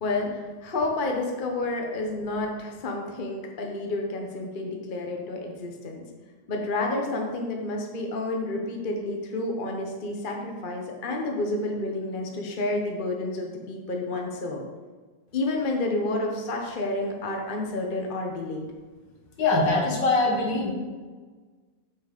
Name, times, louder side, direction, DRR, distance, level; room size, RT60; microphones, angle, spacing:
voice 1, 0.0-6.0 6.5-14.6 15.3-18.7, left 2 dB, 35° left, 1 dB, 0.9 m, -30 dB
voice 2, 19.4-20.7, left 3 dB, 60° left, 0 dB, 2.2 m, -22 dB
7.5 x 6.9 x 5.3 m, 1.4 s
omnidirectional pair, 2.2 m